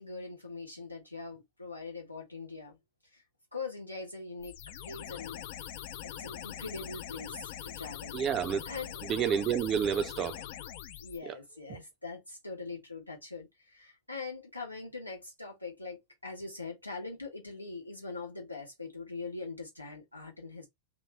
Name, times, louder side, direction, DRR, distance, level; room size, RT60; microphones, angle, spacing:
voice 1, 0.0-2.8 3.1-3.2 3.5-5.4 6.0-8.1 8.6-9.1 10.9-20.7, left 3 dB, 85° left, 1.2 m, -42 dB
sound 1, 4.4-11.2, left 10 dB, 50° left, 0.4 m, -43 dB
voice 2, 8.1-8.7 9.1-10.4 11.3-11.4 11.7-11.8, right 8 dB, 30° right, 0.4 m, -29 dB
3.0 x 2.5 x 3.0 m
figure-of-eight pair, 90°, 0 cm